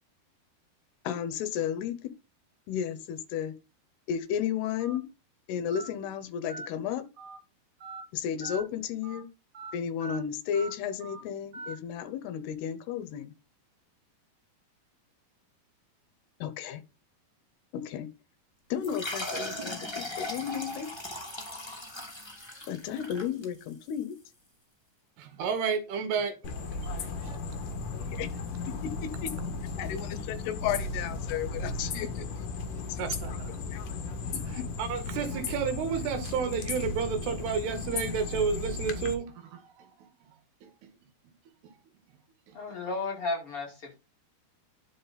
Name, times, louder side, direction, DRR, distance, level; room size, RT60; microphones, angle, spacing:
voice 1, 1.0-2.0 2.7-3.5 4.1-5.1 5.5-7.1 8.1-9.3 9.7-13.3 16.4-16.8 17.7-18.1 18.7-20.9 22.7-24.2 27.9-28.3 28.7-29.3 29.8-32.3 32.9-33.0 33.6-33.8 34.6-34.7, left 8 dB, 80° left, 2.9 m, -33 dB
Telephone, 4.8-5.0 5.7-5.9 6.5-6.7 7.2-7.4 7.8-8.0 8.4-8.6 9.0-9.2 9.5-9.7 10.0-10.2 10.5-10.7 11.0-11.2 11.5-11.7, right 3 dB, 35° right, 1.6 m, -41 dB
sound 1, 18.8-24.0, left 1 dB, 15° left, 0.8 m, -38 dB
voice 2, 25.2-26.6 27.2-27.3 33.0-33.6 34.3-40.1 40.6-40.9 42.5-42.6, right 6 dB, 75° right, 3.3 m, -32 dB
sound 2, 26.4-39.1, left 4 dB, 60° left, 2.7 m, -35 dB
voice 3, 42.5-43.9, left 3 dB, 40° left, 2.5 m, -33 dB
10.0 x 5.9 x 4.0 m
omnidirectional pair, 4.8 m